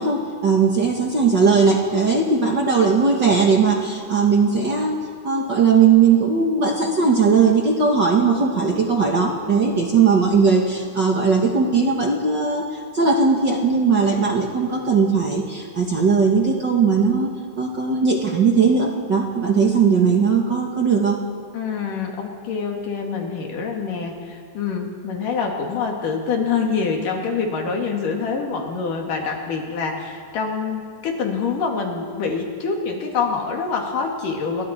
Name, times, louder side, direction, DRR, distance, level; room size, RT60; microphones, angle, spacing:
voice 1, 0.0-5.0 5.2-17.3 17.6-21.2, right 5 dB, 40° right, 0 dB, 1.9 m, -18 dB
voice 2, 21.5-34.7, left 5 dB, 75° left, 1 dB, 3.9 m, -25 dB
29.5 x 23.0 x 4.4 m, 2.2 s
omnidirectional pair, 3.9 m